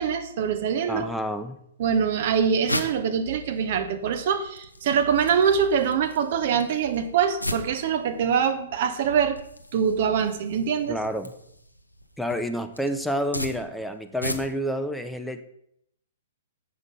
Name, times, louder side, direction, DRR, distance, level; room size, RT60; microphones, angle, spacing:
voice 1, 0.0-1.1 1.8-9.4 9.7-11.0, right 7 dB, 50° right, 8 dB, 0.9 m, -24 dB
voice 2, 0.9-1.6 10.9-11.3 12.2-15.4, equal, ahead, 7 dB, 0.7 m, -29 dB
sound 1, 2.0-14.8, left 1 dB, 90° left, 0.8 m, -38 dB
7.4 x 6.1 x 5.3 m, 0.73 s
figure-of-eight pair, 115°, 0 cm